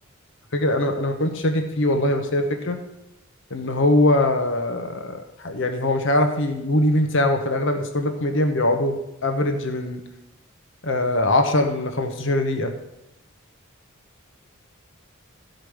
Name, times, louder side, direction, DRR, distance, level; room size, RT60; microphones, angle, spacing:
voice 1, 0.5-2.8 3.5-10.0 10.8-12.7, left 1 dB, 65° left, 6 dB, 1.1 m, -22 dB
13.5 x 5.2 x 6.3 m, 0.88 s
head